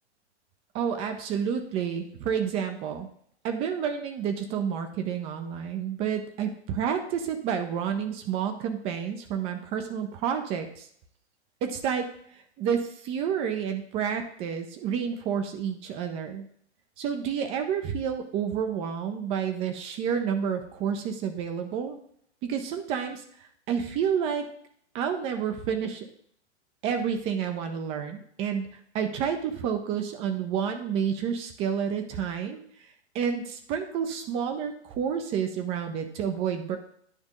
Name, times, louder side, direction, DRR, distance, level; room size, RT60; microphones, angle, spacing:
voice 1, 0.7-3.1 3.4-10.9 11.6-12.1 12.3-16.4 17.0-22.0 22.4-24.5 24.9-26.1 26.8-28.7 28.9-32.6 33.1-36.8, right 7 dB, 15° right, 6 dB, 0.5 m, -29 dB
9.8 x 3.5 x 5.2 m, 0.63 s
figure-of-eight pair, 115°, 35 cm